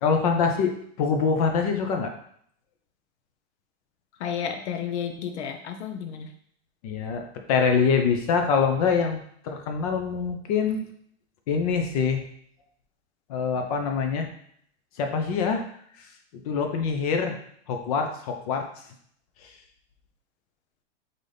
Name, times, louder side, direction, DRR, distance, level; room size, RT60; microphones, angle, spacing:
voice 1, 0.0-2.1 6.8-10.8 11.5-12.2 13.3-14.3 15.0-15.6 16.4-17.4 17.7-18.6 19.4-19.5, left 5 dB, 35° left, 4 dB, 0.5 m, -24 dB
voice 2, 4.2-6.3, left 8 dB, 70° left, 6 dB, 0.8 m, -32 dB
4.0 x 3.9 x 3.3 m, 0.65 s
supercardioid pair, 165°, 35 cm